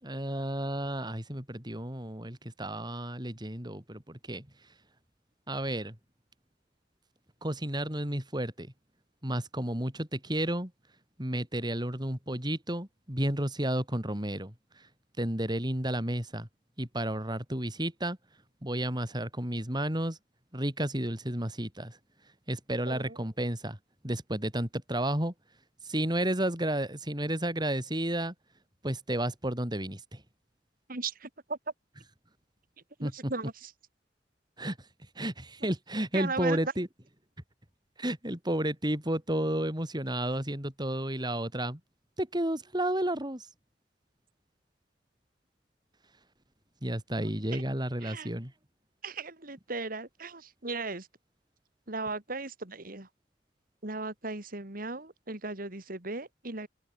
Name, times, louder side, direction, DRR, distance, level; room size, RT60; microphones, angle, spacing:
voice 1, 0.0-4.5 5.5-6.0 7.4-8.7 9.2-10.7 11.2-14.5 15.2-16.5 16.8-18.2 18.6-20.2 20.5-22.0 22.5-23.8 24.0-25.3 25.8-28.3 28.8-30.2 33.0-33.3 34.6-34.8 35.2-36.9 38.0-41.8 42.2-43.5 46.8-48.5, right 1 dB, 25° right, 5.6 m, -32 dB
voice 2, 22.8-23.2 30.9-31.6 33.0-33.7 36.1-36.6 47.2-47.6 48.0-48.3 49.0-51.1 51.9-53.1 53.8-56.7, right 3 dB, 50° right, 3.0 m, -37 dB
open air
head